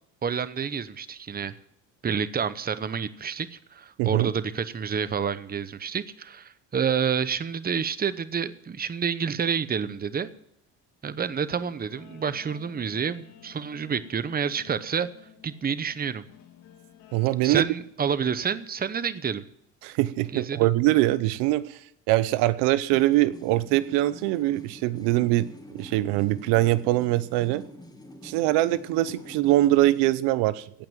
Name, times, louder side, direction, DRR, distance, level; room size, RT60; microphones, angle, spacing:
voice 1, 0.2-1.6 2.0-10.3 11.0-15.1 15.4-16.3 17.4-19.4 20.3-20.7, right 7 dB, 25° right, 14 dB, 0.8 m, -29 dB
voice 2, 4.0-4.3 17.1-17.7 19.8-21.8 22.1-27.6 28.2-30.9, right 16 dB, 85° right, 16 dB, 0.8 m, -23 dB
Guitar, 11.4-17.4, left 10 dB, 75° left, 2.3 m, -52 dB
sound 1, 22.7-30.2, left 1 dB, 10° left, 2.5 m, -46 dB
17.0 x 5.9 x 9.1 m, 0.75 s
cardioid pair, 100°, 39 cm